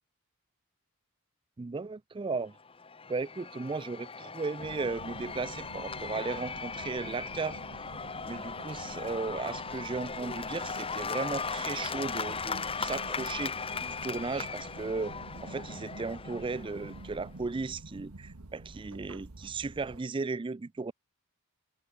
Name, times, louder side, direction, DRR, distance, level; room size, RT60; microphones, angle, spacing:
voice 1, 1.6-2.5 3.1-7.6 8.2-13.5 14.0-15.1 15.4-20.9, right 4 dB, 25° right, 0.4 m, -35 dB
Cheering / Applause / Crowd, 2.6-17.3, left 5 dB, 25° left, 1.3 m, -38 dB
sound 1, 4.6-20.0, right 2 dB, 85° right, 1.3 m, -48 dB
head